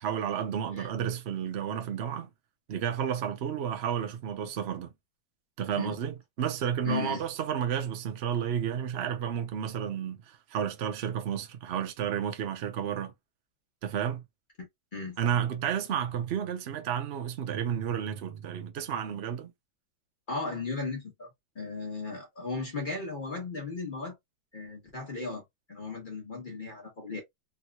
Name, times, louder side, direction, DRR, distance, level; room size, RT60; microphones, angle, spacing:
voice 1, 0.0-2.3 2.7-4.9 5.6-13.1 13.8-14.2 15.2-19.5, right 9 dB, 75° right, 0.6 m, -31 dB
voice 2, 6.8-7.2 14.9-15.3 20.3-21.3 21.5-24.1 24.5-25.4 25.7-27.2, left 4 dB, 35° left, 1.0 m, -36 dB
3.6 x 2.9 x 2.3 m
omnidirectional pair, 2.1 m